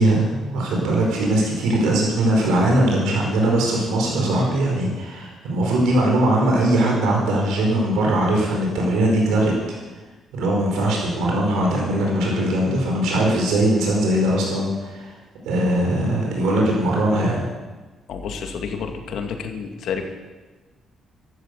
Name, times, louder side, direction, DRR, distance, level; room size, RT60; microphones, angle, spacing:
voice 1, 0.0-9.5 10.3-15.1 15.4-17.4, right 1 dB, 90° right, -1 dB, 4.9 m, -20 dB
voice 2, 18.1-20.0, left 6 dB, 75° left, 4 dB, 2.2 m, -29 dB
13.0 x 12.5 x 8.4 m, 1.2 s
cardioid pair, 90°, 0 cm